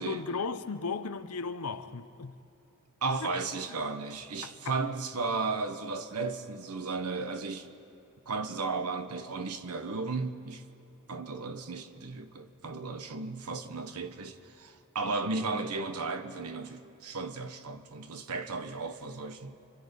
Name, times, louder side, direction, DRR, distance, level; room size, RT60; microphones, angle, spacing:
voice 1, 0.0-2.4 3.2-3.3 4.4-4.7, left 4 dB, 85° left, 0.9 m, -36 dB
voice 2, 3.0-7.7 8.3-10.6 11.1-19.6, right 3 dB, 90° right, 1.3 m, -35 dB
30.0 x 24.5 x 5.4 m
head